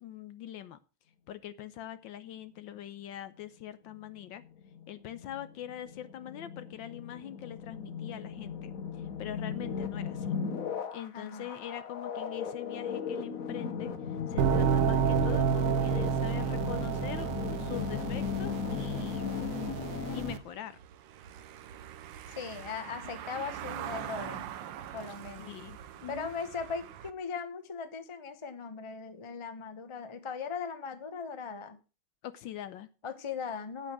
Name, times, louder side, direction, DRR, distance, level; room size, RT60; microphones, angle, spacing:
voice 1, 0.0-0.8 1.3-4.4 4.9-8.7 9.2-10.4 10.9-13.9 14.3-19.3 20.1-20.8 23.3-23.4 25.4-26.3 32.2-32.9, left 11 dB, 70° left, 13 dB, 1.3 m, -43 dB
sound 1, 3.9-20.3, left 7 dB, 50° left, 1.2 m, -37 dB
voice 2, 11.1-11.5 22.3-24.5 24.9-25.6 26.1-31.8 33.0-33.9, left 5 dB, 25° left, 9 dB, 0.7 m, -39 dB
sound 2, 14.4-20.4, right 7 dB, 90° right, 1.8 m, -30 dB
Car passing by / Engine, 20.4-27.1, right 10 dB, 70° right, 1.4 m, -43 dB
8.9 x 8.2 x 6.0 m, 0.33 s
omnidirectional pair, 2.3 m